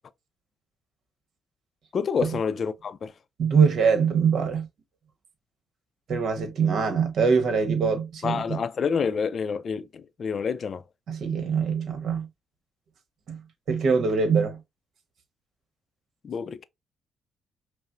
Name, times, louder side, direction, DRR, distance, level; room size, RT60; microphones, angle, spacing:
voice 1, 1.9-3.1 8.2-10.8 16.2-16.6, left 6 dB, 50° left, 0.4 m, -28 dB
voice 2, 3.4-4.7 6.1-8.6 11.1-12.3 13.3-13.4 13.7-14.6, right 5 dB, 65° right, 1.0 m, -23 dB
5.4 x 2.0 x 2.5 m
cardioid pair, 90°, 0 cm